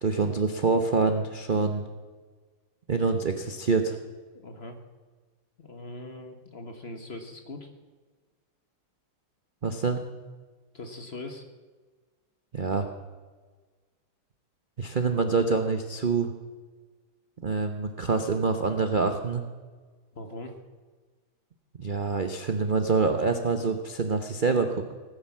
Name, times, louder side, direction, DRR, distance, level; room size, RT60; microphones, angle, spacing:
voice 1, 0.0-1.9 2.9-4.0 9.6-10.0 12.5-12.9 14.8-16.3 17.4-19.4 21.8-24.9, right 4 dB, 55° right, 6 dB, 0.5 m, -26 dB
voice 2, 4.3-4.8 5.6-7.7 10.7-11.4 20.1-20.6, left 2 dB, 35° left, 6 dB, 1.2 m, -41 dB
18.0 x 10.0 x 7.3 m, 1.4 s
omnidirectional pair, 2.3 m